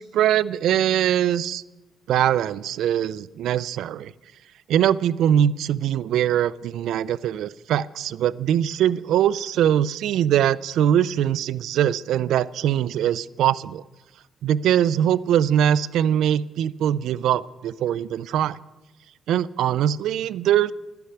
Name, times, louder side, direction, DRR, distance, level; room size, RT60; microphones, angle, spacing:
voice 1, 0.0-1.6 2.1-4.1 4.7-13.8 14.4-18.6 19.3-20.7, right 10 dB, 80° right, 21 dB, 0.4 m, -22 dB
12.0 x 11.0 x 5.7 m, 1.1 s
cardioid pair, 90°, 0 cm